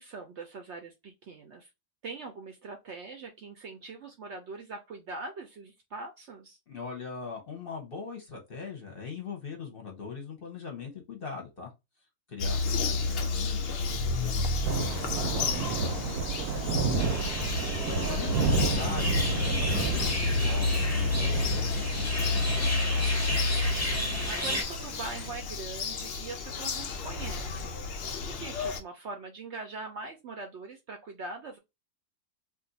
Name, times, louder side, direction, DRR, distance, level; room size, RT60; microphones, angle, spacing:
voice 1, 0.0-1.7 2.0-6.6 18.3-18.8 23.9-27.8 28.3-31.6, right 3 dB, 65° right, 0.7 m, -42 dB
voice 2, 6.7-11.7 12.3-17.3 17.9-23.4, left 5 dB, 45° left, 0.8 m, -42 dB
Bird vocalization bird call bird song, 12.4-28.8, left 4 dB, 80° left, 0.5 m, -31 dB
Thunder / Rain, 14.6-25.3, right 3 dB, 80° right, 1.1 m, -31 dB
sound 1, 17.0-24.6, left 1 dB, 15° left, 0.6 m, -34 dB
2.6 x 2.4 x 3.8 m
omnidirectional pair, 1.6 m